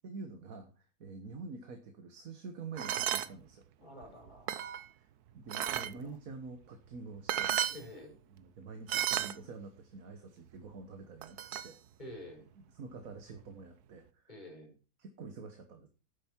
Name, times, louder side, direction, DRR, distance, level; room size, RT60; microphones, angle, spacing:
voice 1, 0.0-3.6 4.9-5.1 5.3-7.6 8.3-11.8 12.7-14.3 15.0-15.9, right 4 dB, 65° right, 6 dB, 1.7 m, -47 dB
sound 1, 2.8-3.3 4.0-4.9 5.5-5.9 7.0-7.1 7.3-7.8 8.9-9.4 11.2-11.7, right 11 dB, 85° right, 1.3 m, -33 dB
voice 2, 3.8-4.9 5.7-6.1 7.7-8.2 12.0-12.5 14.3-14.7, left 1 dB, 30° left, 1 dB, 5.6 m, -50 dB
12.0 x 9.3 x 4.6 m, 0.33 s
omnidirectional pair, 1.6 m